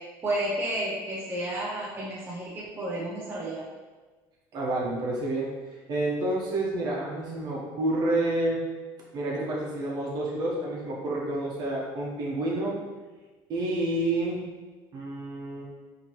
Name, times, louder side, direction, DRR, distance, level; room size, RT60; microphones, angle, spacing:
voice 1, 0.2-3.6, right 1 dB, 25° right, -6 dB, 0.6 m, -31 dB
voice 2, 4.5-5.5 5.9-8.6 9.1-12.8 13.5-14.4 14.9-15.6, right 1 dB, 50° right, -3 dB, 1.0 m, -29 dB
4.2 x 2.9 x 3.0 m, 1.3 s
cardioid pair, 145°, 9 cm